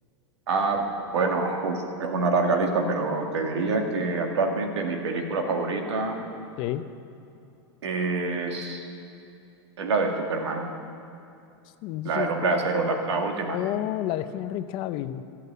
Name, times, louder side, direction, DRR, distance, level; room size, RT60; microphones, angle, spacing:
voice 1, 0.5-0.9 1.1-6.2 7.8-8.9 9.8-10.7 12.1-13.6, right 3 dB, 90° right, 3 dB, 2.0 m, -26 dB
voice 2, 11.8-13.2 13.5-15.2, left 12 dB, 40° left, 12 dB, 0.5 m, -31 dB
12.5 x 8.3 x 9.3 m, 2.7 s
supercardioid pair, 145°, 14 cm